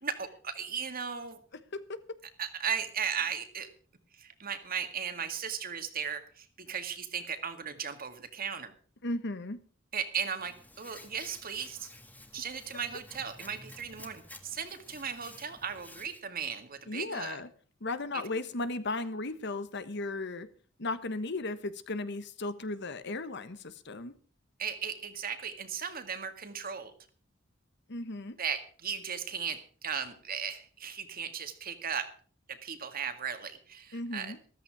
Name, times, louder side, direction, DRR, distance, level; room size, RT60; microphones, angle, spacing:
voice 1, 0.0-1.4 2.4-3.7 4.1-8.7 9.9-11.9 12.3-17.4 18.1-18.2 24.6-26.9 28.4-32.1 32.5-34.3, right 7 dB, 50° right, 8 dB, 2.0 m, -36 dB
voice 2, 9.0-9.6 16.9-17.5 17.8-20.5 20.8-24.1 27.9-28.4 33.9-34.4, left 2 dB, 60° left, 13 dB, 1.2 m, -36 dB
Hands, 10.4-16.2, left 1 dB, 10° left, 1.6 m, -52 dB
14.5 x 13.5 x 4.8 m, 0.42 s
head